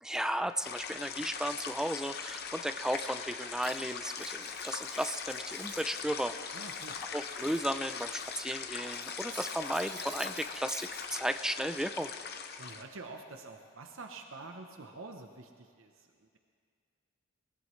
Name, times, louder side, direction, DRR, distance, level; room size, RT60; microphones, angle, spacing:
voice 1, 0.0-6.3 7.1-12.1, right 1 dB, 5° right, 9 dB, 0.4 m, -35 dB
sound 1, 0.6-12.8, left 6 dB, 50° left, 0.8 m, -41 dB
Cutlery silverware, 3.6-6.1 6.4-8.5 8.8-11.1, right 7 dB, 40° right, 1.3 m, -52 dB
voice 2, 6.5-7.0 12.6-16.4, right 3 dB, 65° right, 4 dB, 0.8 m, -47 dB
21.5 x 19.5 x 3.2 m, 2.2 s
head